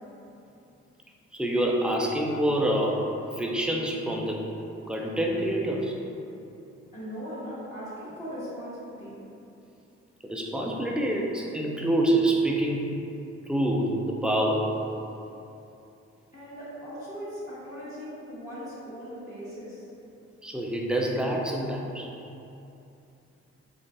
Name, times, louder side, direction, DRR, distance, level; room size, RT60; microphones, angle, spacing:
voice 1, 1.3-4.4 4.9-5.9 10.2-12.9 13.5-14.7 20.4-22.1, right 1 dB, 5° right, -1 dB, 0.4 m, -26 dB
voice 2, 6.9-9.2 16.3-19.8, equal, 25° left, -13 dB, 1.1 m, -39 dB
3.7 x 2.4 x 2.6 m, 2.8 s
cardioid pair, 55°, 29 cm